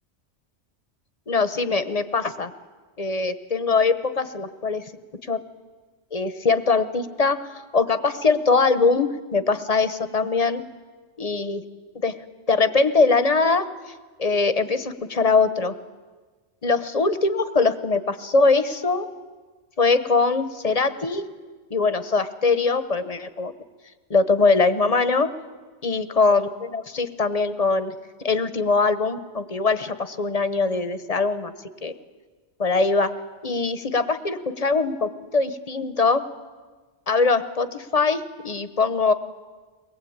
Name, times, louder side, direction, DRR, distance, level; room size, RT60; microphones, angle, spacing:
voice 1, 1.3-2.5 3.0-4.9 5.2-5.4 6.1-10.6 11.2-11.6 12.0-12.2 12.5-13.7 14.2-15.7 16.6-19.1 19.8-21.2 21.7-23.5 24.1-25.3 25.8-27.9 28.2-31.5 31.8-31.9 32.6-33.1 33.4-36.2 37.1-39.1, left 4 dB, 35° left, 12 dB, 0.9 m, -22 dB
23.0 x 19.0 x 8.7 m, 1.4 s
omnidirectional pair, 1.2 m